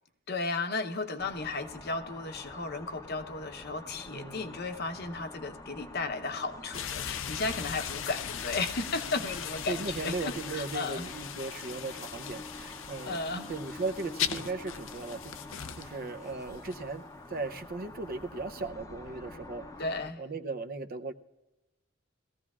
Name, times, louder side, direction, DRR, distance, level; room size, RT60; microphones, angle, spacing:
voice 1, 0.3-11.1 13.0-13.5 19.8-20.2, left 3 dB, 55° left, 7 dB, 0.8 m, -34 dB
sound 1, 1.2-20.1, left 2 dB, 15° left, 0.7 m, -47 dB
voice 2, 4.1-4.7 9.7-13.2 13.5-15.3 15.7-17.0 17.3-19.7 20.2-21.1, right 3 dB, 50° right, 8 dB, 0.6 m, -37 dB
sound 2, 6.7-16.1 16.6-16.8, left 9 dB, 80° left, 0.6 m, -39 dB
19.0 x 14.5 x 2.4 m, 1.0 s
head